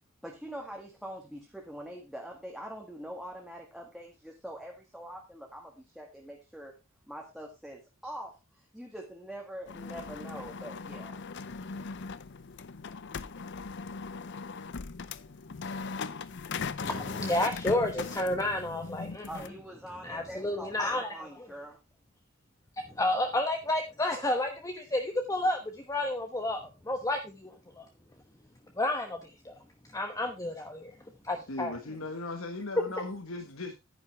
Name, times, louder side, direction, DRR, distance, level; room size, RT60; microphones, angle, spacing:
voice 1, 0.2-6.7 7.1-11.2 19.3-21.8, right 1 dB, ahead, 1.8 m, -44 dB
sound 1, 9.7-19.5, left 5 dB, 55° left, 0.6 m, -39 dB
voice 2, 16.8-19.5 20.0-21.1 22.9-25.6 25.9-27.9 28.8-29.5 29.9-30.9 31.2-31.7, left 1 dB, 15° left, 1.0 m, -31 dB
voice 3, 31.5-33.7, left 2 dB, 75° left, 1.3 m, -37 dB
10.5 x 10.0 x 3.2 m
head